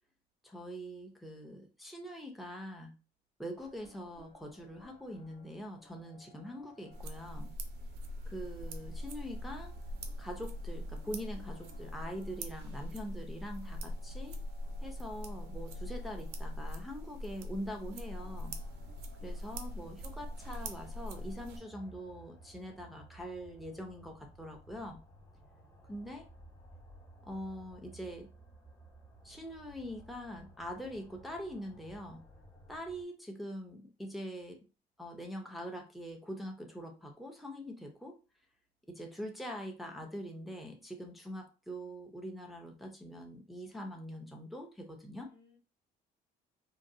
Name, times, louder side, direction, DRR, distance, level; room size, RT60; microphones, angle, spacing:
voice 1, 0.4-3.0 3.4-7.5 8.3-9.7 10.2-14.4 14.8-18.6 19.2-25.0 25.9-26.2 27.2-28.3 29.2-32.2 32.7-34.6 35.0-38.2 38.9-45.3, equal, ahead, 1 dB, 0.6 m, -43 dB
sound 1, 3.5-21.9, left 3 dB, 55° left, 1.0 m, -62 dB
sound 2, 6.9-21.6, equal, 80° right, 0.6 m, -42 dB
sound 3, 18.1-33.1, right 1 dB, 20° left, 1.0 m, -57 dB
voice 2, 19.7-20.4 45.2-45.6, left 5 dB, 90° left, 0 dB, 1.4 m, -64 dB
3.7 x 2.2 x 2.6 m, 0.33 s
cardioid pair, 110°, 17 cm